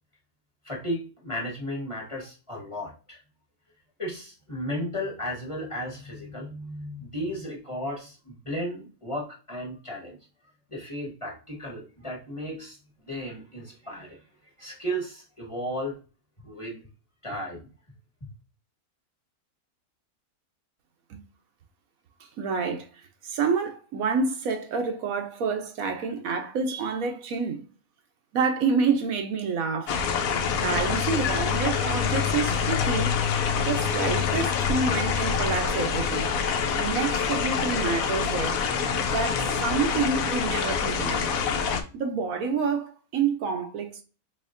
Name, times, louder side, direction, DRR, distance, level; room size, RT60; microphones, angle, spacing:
voice 1, 0.6-3.2 4.0-10.2 10.7-16.0 16.4-16.8 17.2-17.7, equal, 20° left, 1.2 m, -34 dB
voice 2, 22.4-22.9 23.2-27.7 28.3-30.0 30.5-33.1 33.6-36.3 36.8-38.7 38.9-41.3 41.9-44.0, right 5 dB, 70° right, 1.0 m, -28 dB
sound 1, 29.9-41.8, left 6 dB, 70° left, 1.0 m, -26 dB
4.2 x 3.4 x 2.5 m
omnidirectional pair, 1.6 m